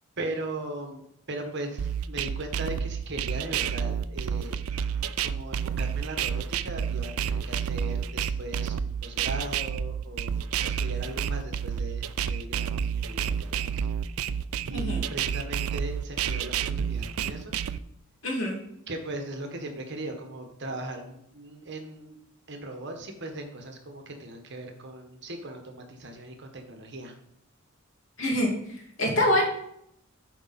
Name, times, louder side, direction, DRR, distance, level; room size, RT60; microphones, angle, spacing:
voice 1, 0.2-4.6 5.2-13.9 14.2-14.3 14.7-17.5 18.9-22.2 22.5-27.1, right 1 dB, 55° right, 4 dB, 1.3 m, -38 dB
sound 1, 1.8-17.8, right 8 dB, 85° right, 0.4 m, -29 dB
voice 2, 14.7-15.0 18.2-18.6 28.2-29.5, left 1 dB, 70° left, -1 dB, 2.4 m, -26 dB
10.5 x 4.8 x 4.2 m, 0.76 s
head